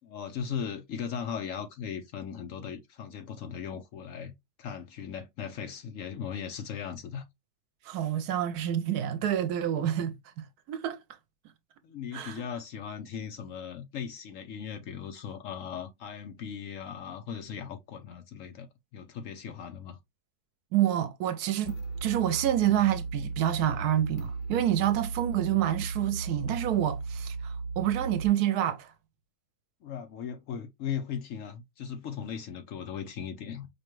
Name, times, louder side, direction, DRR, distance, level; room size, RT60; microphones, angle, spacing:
voice 1, 0.0-4.3 4.6-7.3 11.8-20.0 29.8-33.7, left 7 dB, 65° left, 0.9 m, -38 dB
voice 2, 7.9-11.0 12.1-12.4 20.7-21.7 22.0-28.9, right 11 dB, 80° right, 1.1 m, -28 dB
sound 1, 21.6-28.3, right 3 dB, 85° left, 1.3 m, -36 dB
5.0 x 2.2 x 3.0 m
omnidirectional pair, 1.6 m